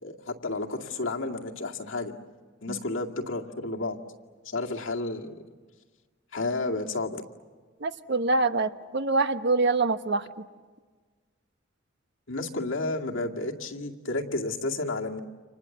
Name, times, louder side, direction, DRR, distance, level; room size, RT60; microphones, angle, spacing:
voice 1, 0.0-2.1 2.6-4.0 4.4-5.3 6.3-7.2 12.3-15.2, left 2 dB, 80° left, 0 dB, 2.2 m, -31 dB
voice 2, 7.8-10.3, right 3 dB, 60° right, 10 dB, 1.1 m, -25 dB
30.0 x 26.5 x 7.3 m, 1.4 s
head